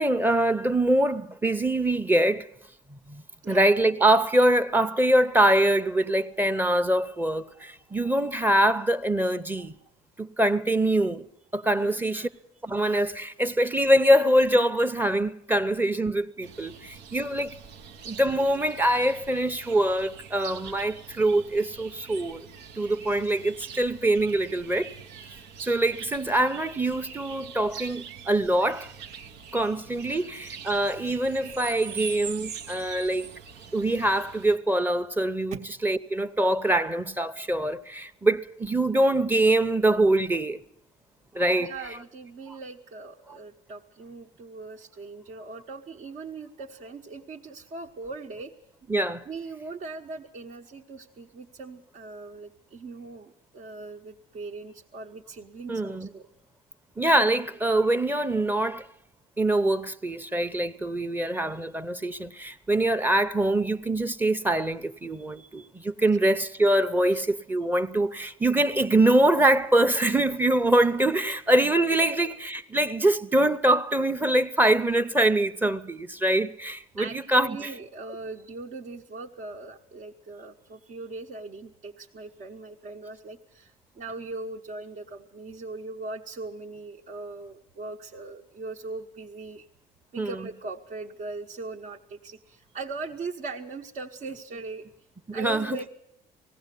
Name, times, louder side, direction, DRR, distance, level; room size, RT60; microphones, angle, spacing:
voice 1, 0.0-2.5 2.9-9.7 10.2-11.2 11.5-12.3 12.6-17.6 18.1-22.4 22.8-24.9 25.6-28.9 29.5-33.3 33.7-40.6 41.3-42.0 48.9-49.2 55.7-56.1 57.0-58.9 59.4-77.7 90.2-90.5 95.3-95.9, right 1 dB, 10° right, 0.8 m, -24 dB
voice 2, 11.8-12.3 35.5-35.6 41.6-48.5 49.2-56.3 65.2-65.7 66.1-66.2 67.1-67.2 72.0-72.3 77.0-89.7 90.1-94.9 95.3-95.9, right 3 dB, 55° right, 1.2 m, -40 dB
sound 1, 16.4-34.6, right 7 dB, 85° right, 1.1 m, -43 dB
19.0 x 16.5 x 8.3 m
cardioid pair, 110°, 17 cm